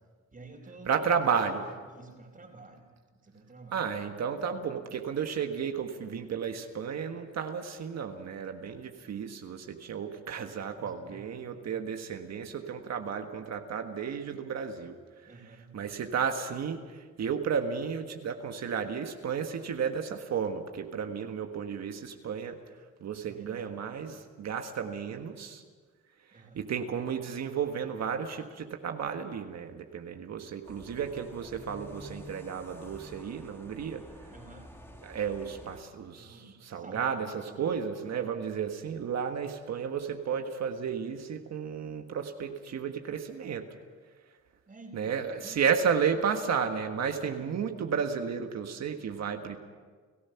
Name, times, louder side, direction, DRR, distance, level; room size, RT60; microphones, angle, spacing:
voice 1, 0.3-1.1 1.6-2.9 3.2-3.8 10.8-11.7 15.3-15.8 23.2-23.8 26.3-26.7 34.3-34.7 36.1-37.8 38.0-38.3 44.7-45.6 47.1-47.5, right 3 dB, 30° right, -5 dB, 3.7 m, -50 dB
voice 2, 0.9-1.7 3.7-15.0 15.7-22.6 23.0-25.6 26.3-34.1 35.0-43.8 44.9-49.6, right 7 dB, 60° right, 5 dB, 1.5 m, -33 dB
sound 1, 30.6-35.8, left 1 dB, 10° left, 2.2 m, -49 dB
30.0 x 15.0 x 5.8 m, 1.5 s
cardioid pair, 90°, 30 cm